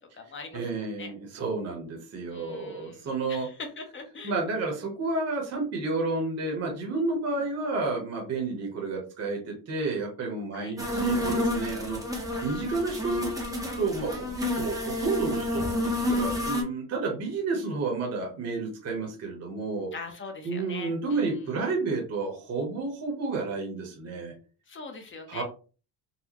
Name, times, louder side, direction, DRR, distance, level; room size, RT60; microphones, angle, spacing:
voice 1, 0.0-1.1 2.3-4.4 10.5-10.7 11.8-12.0 16.5-16.7 19.9-21.3 24.7-25.4, left 4 dB, 30° left, 5 dB, 0.8 m, -42 dB
voice 2, 0.5-3.5 4.2-13.3 13.8-19.9 20.4-24.3 25.3-25.4, right 3 dB, 40° right, 0 dB, 1.0 m, -31 dB
sound 1, 10.8-16.6, left 1 dB, 10° right, 0.7 m, -29 dB
4.1 x 2.2 x 2.9 m, 0.36 s
cardioid pair, 135°, 40 cm